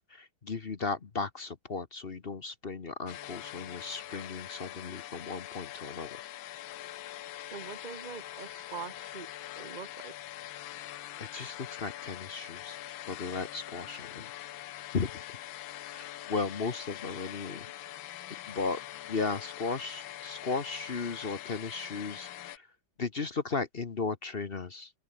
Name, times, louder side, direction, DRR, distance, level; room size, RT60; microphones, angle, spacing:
voice 1, 0.0-6.1 11.2-12.8 13.1-14.3 14.9-15.3 15.9-18.0 18.5-18.8 19.1-22.7 23.0-24.9, left 4 dB, 35° left, 1.1 m, -36 dB
sound 1, 3.1-22.6, left 14 dB, 80° left, 1.5 m, -43 dB
voice 2, 7.5-9.3 9.6-10.1, right 6 dB, 25° right, 1.3 m, -43 dB
open air
omnidirectional pair, 2.1 m